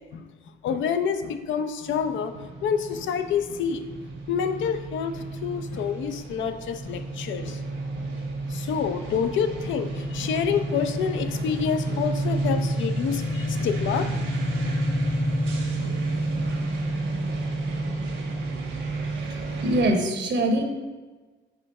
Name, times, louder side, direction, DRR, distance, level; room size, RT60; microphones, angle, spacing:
voice 1, 0.0-3.8 4.3-8.1 8.5-14.3 14.6-14.8 15.8-16.0, left 7 dB, 75° left, 8 dB, 0.5 m, -28 dB
sound 1, 1.9-19.9, right 1 dB, 80° right, 1.3 m, -30 dB
voice 2, 19.6-20.6, right 1 dB, 65° right, 4 dB, 0.9 m, -22 dB
4.9 x 3.7 x 5.3 m, 1.3 s
cardioid pair, 90°, 20 cm